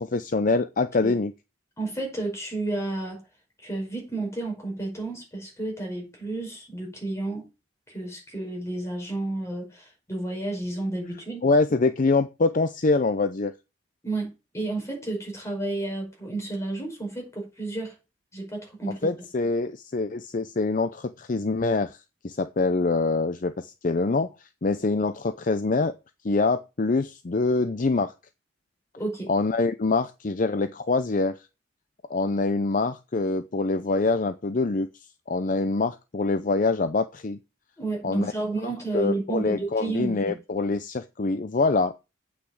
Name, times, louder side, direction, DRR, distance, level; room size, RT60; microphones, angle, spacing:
voice 1, 0.0-1.3 11.4-13.5 19.0-22.0 22.2-24.3 24.6-25.9 26.2-28.1 29.3-31.4 32.1-34.9 35.3-37.4 38.0-38.3 38.9-42.0, left 3 dB, 45° left, 0.6 m, -25 dB
voice 2, 1.8-3.2 3.6-7.5 7.9-11.4 14.0-17.9 18.3-19.1 29.0-29.3 37.8-40.4, right 2 dB, 15° left, 5.4 m, -31 dB
8.5 x 5.8 x 7.7 m
head